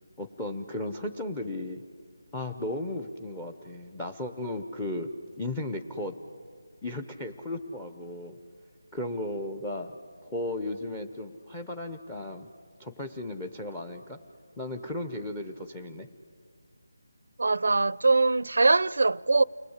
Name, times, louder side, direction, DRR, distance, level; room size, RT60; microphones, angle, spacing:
voice 1, 0.2-1.8 2.3-5.1 5.4-6.1 6.8-8.4 8.9-9.9 10.2-12.5 12.8-14.2 14.6-16.1, left 1 dB, 10° left, 0.9 m, -35 dB
voice 2, 17.4-19.4, right 3 dB, 70° right, 0.6 m, -22 dB
30.0 x 20.5 x 8.1 m
figure-of-eight pair, 170°, 0 cm